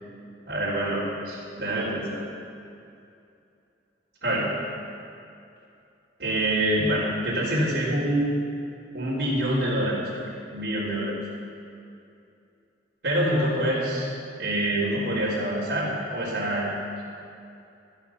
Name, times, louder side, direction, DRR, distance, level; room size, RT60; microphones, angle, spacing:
voice 1, 0.5-2.2 4.2-4.5 6.2-8.3 8.9-10.2 10.5-11.1 13.0-14.1 14.4-16.7, right 1 dB, 75° right, -10 dB, 3.8 m, -26 dB
14.0 x 13.5 x 5.9 m, 2.6 s
head